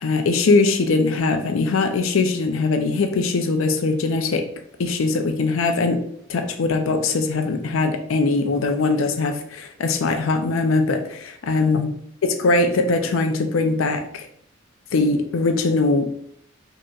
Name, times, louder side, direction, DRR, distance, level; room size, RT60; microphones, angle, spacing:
voice 1, 0.0-4.5 4.8-6.0 6.3-11.9 12.2-14.3 14.9-16.1, left 3 dB, 70° left, 6 dB, 0.5 m, -21 dB
5.0 x 2.9 x 2.4 m, 0.67 s
head